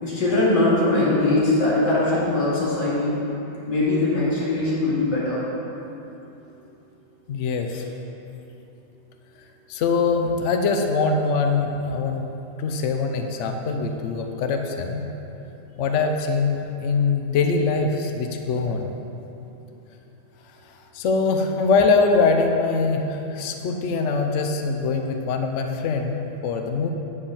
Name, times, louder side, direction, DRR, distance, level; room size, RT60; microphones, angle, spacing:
voice 1, 0.0-3.1 3.7-5.4, left 2 dB, 65° left, -8 dB, 2.9 m, -21 dB
voice 2, 7.3-7.8 9.7-12.3 12.6-15.0 15.8-18.9 20.9-26.9, left 4 dB, 80° left, 4 dB, 0.6 m, -23 dB
9.8 x 4.8 x 7.1 m, 2.9 s
omnidirectional pair, 2.1 m